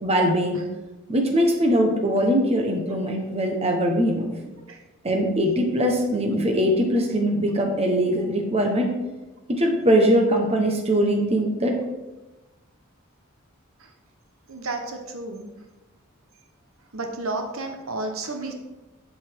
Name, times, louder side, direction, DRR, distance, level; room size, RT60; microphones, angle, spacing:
voice 1, 0.0-0.6 1.1-4.3 5.0-8.9 9.5-11.7, equal, 30° right, 2 dB, 1.1 m, -21 dB
voice 2, 14.5-15.5 16.9-18.5, right 2 dB, 85° right, 4 dB, 1.1 m, -31 dB
8.0 x 7.4 x 3.6 m, 1.1 s
head